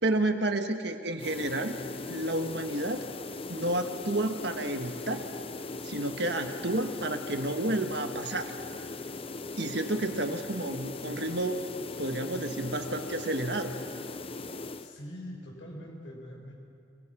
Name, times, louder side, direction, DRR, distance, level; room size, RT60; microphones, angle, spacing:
voice 1, 0.0-1.8 2.1-3.0 3.5-5.2 5.8-8.5 9.6-11.6 12.0-13.7, right 1 dB, 60° right, 6 dB, 1.7 m, -30 dB
sound 1, 1.2-14.9, left 3 dB, 30° left, 0.7 m, -39 dB
voice 2, 14.8-16.6, equal, 75° left, -2 dB, 6.6 m, -43 dB
30.0 x 21.5 x 6.2 m, 2.4 s
head